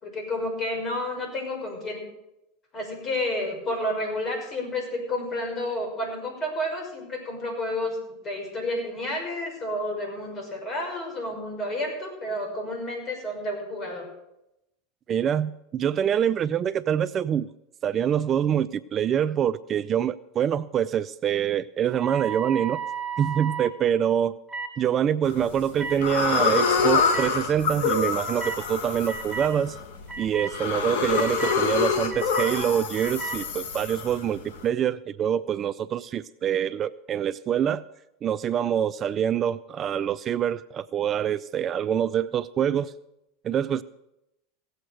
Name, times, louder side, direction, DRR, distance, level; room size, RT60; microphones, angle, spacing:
voice 1, 0.0-2.0 2.7-14.0, left 1 dB, 35° left, 2 dB, 6.0 m, -30 dB
voice 2, 15.1-17.5 17.8-22.8 23.2-24.4 24.8-29.8 30.2-37.8 38.2-42.9 43.4-43.8, right 9 dB, 35° right, 16 dB, 0.4 m, -25 dB
sound 1, 21.9-23.7 24.5-24.7 25.8-26.0 27.1-27.3 28.4-28.6 29.1-29.5 30.1-30.5 31.1-31.6 32.1-32.5 32.9-33.4, right 6 dB, ahead, 2.0 m, -33 dB
sound 2, 25.2-25.6 26.0-34.6, left 5 dB, 70° left, 1.8 m, -26 dB
17.0 x 7.9 x 6.6 m, 0.87 s
hypercardioid pair, 100°, 0 cm